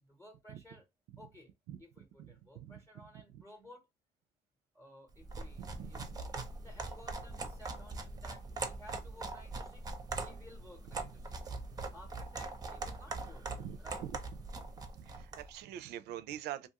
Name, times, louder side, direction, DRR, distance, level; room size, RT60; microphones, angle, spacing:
voice 1, 0.0-0.9 1.2-1.5 1.8-3.9 4.7-11.6 11.9-13.5 13.8-14.0, left 1 dB, 15° left, 0.8 m, -57 dB
sound 1, 5.2-15.5, right 3 dB, 20° right, 0.5 m, -42 dB
voice 2, 5.8-6.1 13.6-14.1 15.0-16.7, right 12 dB, 80° right, 0.4 m, -44 dB
2.4 x 2.4 x 2.8 m
cardioid pair, 110°, 17 cm